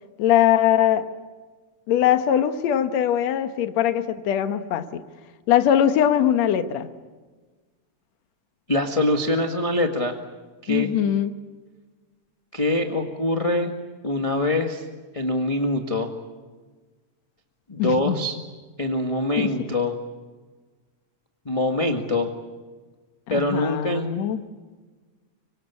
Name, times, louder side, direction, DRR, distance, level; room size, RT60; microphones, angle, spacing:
voice 1, 0.2-1.1 1.9-5.0 5.5-6.9 10.7-11.3 17.8-18.2 19.4-19.7 23.3-24.4, left 10 dB, 70° left, 9 dB, 2.4 m, -21 dB
voice 2, 8.7-10.1 10.6-10.9 12.5-13.7 14.0-14.8 15.1-16.1 17.7-18.4 18.8-19.9 21.4-22.3 23.3-24.1, left 1 dB, 15° left, 3 dB, 1.2 m, -24 dB
25.0 x 25.0 x 8.4 m, 1.3 s
omnidirectional pair, 3.3 m